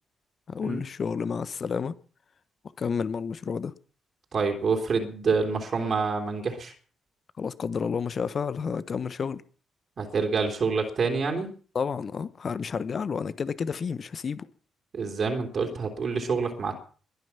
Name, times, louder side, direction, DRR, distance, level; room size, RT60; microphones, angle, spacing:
voice 1, 0.5-1.9 2.8-3.7 7.4-9.4 11.7-14.5, left 6 dB, 50° left, 1.1 m, -30 dB
voice 2, 4.3-6.7 10.0-11.5 14.9-16.7, right 4 dB, 50° right, 3.3 m, -27 dB
21.5 x 9.5 x 5.9 m
hypercardioid pair, 40°, 0 cm